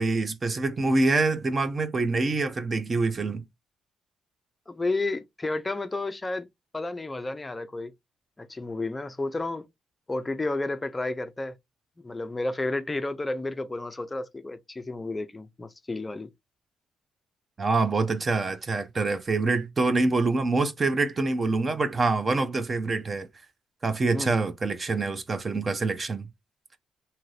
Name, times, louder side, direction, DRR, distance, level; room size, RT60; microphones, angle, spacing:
voice 1, 0.0-3.4 17.6-23.3 23.8-26.3, right 3 dB, 30° right, 0.5 m, -25 dB
voice 2, 4.7-6.5 6.7-7.9 8.4-9.7 10.1-11.6 12.0-16.3 24.1-24.4, left 2 dB, 20° left, 0.4 m, -31 dB
2.8 x 2.5 x 3.2 m
cardioid pair, 90°, 0 cm